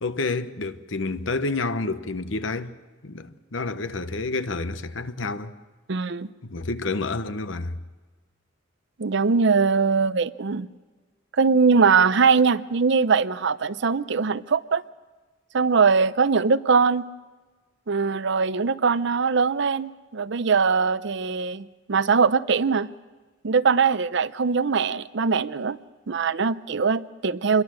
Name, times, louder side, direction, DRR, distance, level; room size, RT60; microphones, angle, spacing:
voice 1, 0.0-2.8 3.0-5.6 6.4-7.7, left 3 dB, 70° left, 1.0 m, -29 dB
voice 2, 5.9-6.3 9.0-10.7 11.3-14.8 15.5-17.1 17.9-22.9 23.4-25.8 26.1-27.6, right 5 dB, 65° right, 0.6 m, -21 dB
26.5 x 22.0 x 6.4 m
head